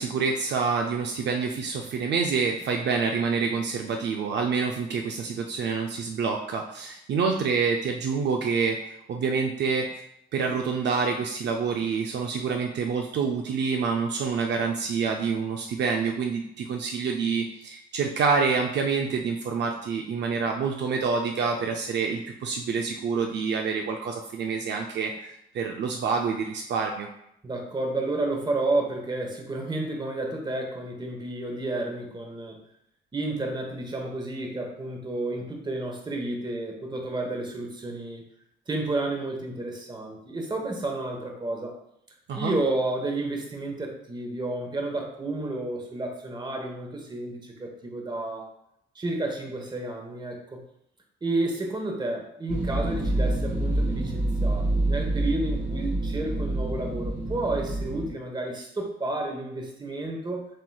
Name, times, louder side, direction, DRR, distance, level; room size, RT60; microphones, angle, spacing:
voice 1, 0.0-8.8 9.1-9.9 10.3-27.1 42.3-42.5, right 5 dB, 60° right, 2 dB, 0.5 m, -27 dB
voice 2, 27.4-32.6 33.1-38.2 38.7-41.8 42.4-48.5 48.9-50.6 51.2-60.5, right 2 dB, 20° right, 2 dB, 1.1 m, -31 dB
sound 1, 52.5-58.1, right 1 dB, 40° right, 1.3 m, -27 dB
7.4 x 3.0 x 2.3 m, 0.77 s
cardioid pair, 90°, 20 cm